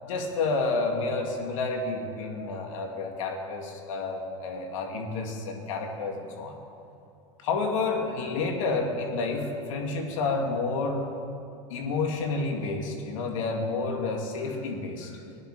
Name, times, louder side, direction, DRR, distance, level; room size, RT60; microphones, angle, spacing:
voice 1, 0.0-6.6 7.4-11.1 11.7-15.2, left 3 dB, 80° left, 2 dB, 2.5 m, -30 dB
19.5 x 10.5 x 5.1 m, 2.5 s
hypercardioid pair, 105°, 17 cm